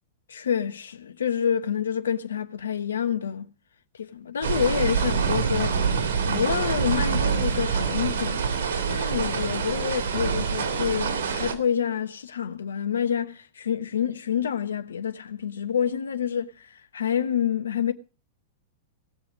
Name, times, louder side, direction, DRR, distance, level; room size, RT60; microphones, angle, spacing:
voice 1, 0.3-3.5 3.9-5.8 6.2-8.4 8.9-17.9, left 8 dB, 80° left, 1.1 m, -28 dB
sound 1, 4.4-11.5, right 6 dB, 65° right, 3.0 m, -26 dB
18.5 x 7.1 x 6.0 m
hypercardioid pair, 100°, 0 cm